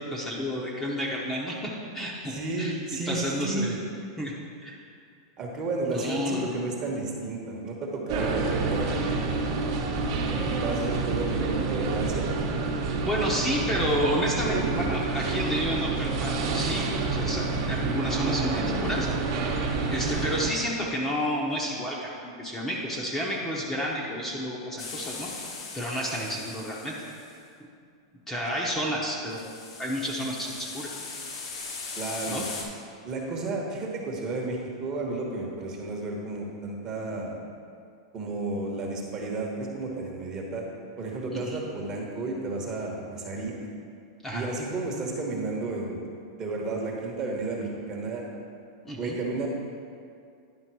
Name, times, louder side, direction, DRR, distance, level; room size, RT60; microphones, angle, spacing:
voice 1, 0.1-2.7 3.1-3.8 4.2-4.3 4.6-4.8 5.9-6.6 13.0-19.1 19.9-25.3 25.7-26.9 28.3-29.4 29.8-30.9 32.3-32.4 41.3-41.6 44.2-44.5 48.8-49.2, equal, 10° left, -4 dB, 0.8 m, -30 dB
voice 2, 2.3-3.7 5.4-9.4 10.2-12.3 28.6-28.8 31.9-32.5 33.0-37.4 38.1-43.5 44.3-46.0 46.4-48.2 49.0-49.5, right 2 dB, 25° right, 0 dB, 1.1 m, -32 dB
sound 1, 8.1-20.5, right 3 dB, 50° right, 1.0 m, -28 dB
sound 2, 24.8-27.3 29.3-32.6, left 4 dB, 90° left, 1.5 m, -39 dB
10.5 x 3.7 x 6.1 m, 2.3 s
supercardioid pair, 165°, 3 cm